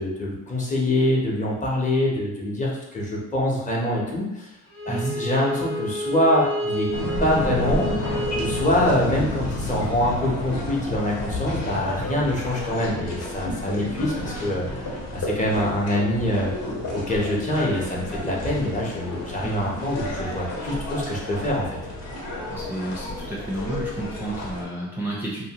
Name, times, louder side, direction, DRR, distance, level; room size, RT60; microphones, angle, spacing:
voice 1, 0.0-4.5 4.9-7.9 8.4-14.7 15.1-16.5 16.9-21.8, left 1 dB, 25° left, -3 dB, 0.8 m, -24 dB
Bowed string instrument, 4.7-9.6, equal, 85° left, 0.8 m, -31 dB
voice 2, 4.9-5.2 13.7-14.1 19.4-19.8 22.5-25.5, right 2 dB, 5° right, -5 dB, 0.5 m, -31 dB
sound 1, 6.9-24.6, left 1 dB, 60° left, 1.0 m, -31 dB
2.6 x 2.2 x 2.8 m, 0.90 s
cardioid pair, 90°, 30 cm